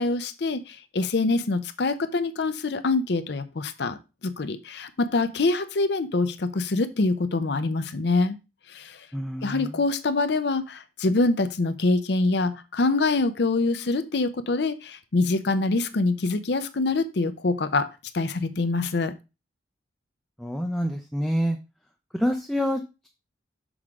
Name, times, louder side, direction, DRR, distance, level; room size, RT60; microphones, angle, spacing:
voice 1, 0.0-4.0 4.2-8.4 8.7-9.0 9.4-17.9 18.1-19.2, left 3 dB, 60° left, 0.6 m, -25 dB
voice 2, 9.1-9.8 20.4-21.6 22.1-23.1, equal, 5° left, 0.5 m, -27 dB
6.3 x 3.7 x 4.8 m
head